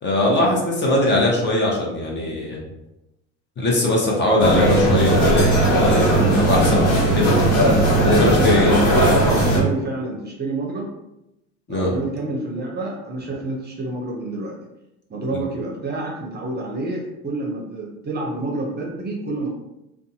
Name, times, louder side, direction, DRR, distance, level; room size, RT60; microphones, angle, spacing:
voice 1, 0.0-2.6 3.6-7.4 8.0-8.8 11.7-11.9 15.3-15.4, left 1 dB, 35° left, -3 dB, 0.9 m, -20 dB
sound 1, 4.4-9.6, right 1 dB, 75° left, 1.2 m, -17 dB
voice 2, 8.2-10.9 11.7-14.6 15.1-19.5, right 2 dB, 30° right, -1 dB, 0.6 m, -28 dB
2.5 x 2.3 x 2.7 m, 0.89 s
supercardioid pair, 90°, 33 cm